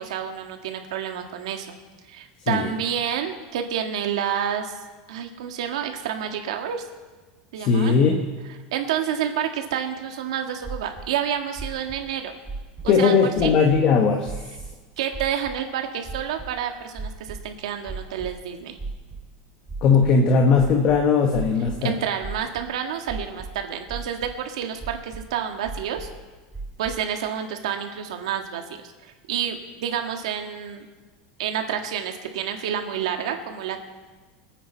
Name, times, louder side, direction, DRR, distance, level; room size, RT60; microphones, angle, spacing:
voice 1, 0.0-1.8 2.1-4.7 5.1-6.8 7.5-8.0 8.7-12.4 12.8-13.2 13.4-13.5 15.0-18.8 21.8-26.1 26.8-30.9 31.4-33.8, right 9 dB, 85° right, 4 dB, 1.8 m, -29 dB
voice 2, 7.6-8.3 12.9-14.3 19.8-21.9, left 5 dB, 30° left, 3 dB, 1.2 m, -19 dB
sound 1, 10.6-11.1 11.5-12.0 12.4-13.0 13.4-13.8 14.3-14.7 15.1-15.5 16.0-16.5 16.9-17.5 17.8-18.3 18.8-19.3 19.7-20.1 20.5-21.7 22.2-22.6 23.1-23.6 23.9-24.3 24.8-25.2 25.6-26.2 26.5-26.9, right 3 dB, 10° right, 2.5 m, -35 dB
25.0 x 9.3 x 4.6 m, 1.3 s
supercardioid pair, 180°, 3 cm